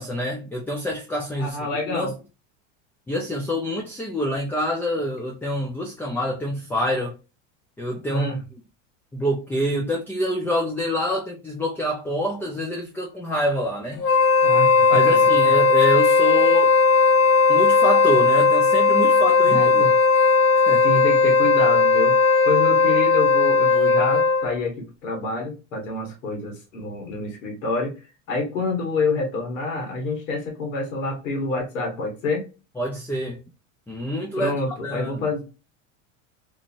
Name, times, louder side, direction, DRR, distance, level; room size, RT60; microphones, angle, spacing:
voice 1, 0.0-2.1 3.1-7.1 7.8-8.3 9.1-14.0 14.9-16.8 17.5-19.8 20.7-20.8 32.8-33.4 33.9-34.5 34.8-35.3, equal, 5° left, 0.4 m, -26 dB
voice 2, 1.4-2.1 8.1-8.4 14.4-15.2 19.4-19.9 20.8-22.2 22.4-27.9 28.3-32.4 34.4-35.4, left 3 dB, 85° left, 1.5 m, -27 dB
Wind instrument woodwind instrument, 14.0-24.6, left 4 dB, 60° left, 0.8 m, -17 dB
3.0 x 2.6 x 2.5 m
supercardioid pair, 115°, 37 cm